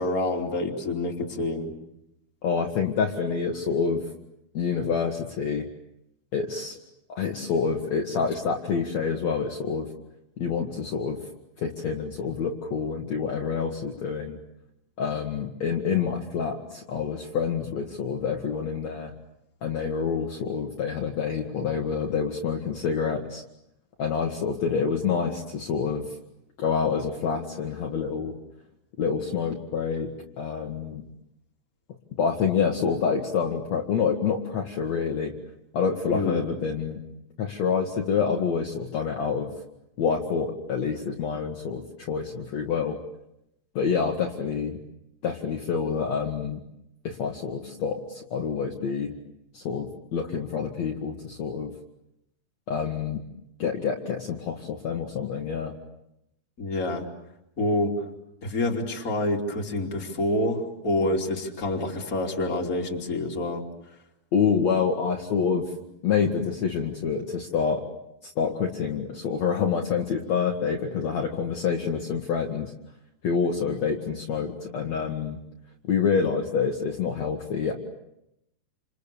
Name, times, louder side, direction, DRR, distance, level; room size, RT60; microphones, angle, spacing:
voice 1, 0.0-1.7 36.1-36.4 56.6-57.0 57.6-57.9 58.4-63.7, left 1 dB, 25° left, 0 dB, 3.2 m, -27 dB
voice 2, 2.4-4.0 4.5-5.7 6.3-6.7 7.1-9.9 10.4-11.2 11.6-14.4 15.0-19.1 19.6-23.4 24.0-26.2 26.6-28.4 29.0-31.0 32.2-35.3 35.7-37.0 37.4-39.5 40.0-43.0 43.7-44.8 45.2-46.6 47.0-49.2 49.5-51.7 52.7-53.2 53.6-55.7 64.3-65.7 66.0-67.8 68.2-72.7 73.2-75.4 75.9-77.7, left 6 dB, 55° left, 1 dB, 2.7 m, -27 dB
29.0 x 28.0 x 6.9 m, 0.85 s
omnidirectional pair, 4.2 m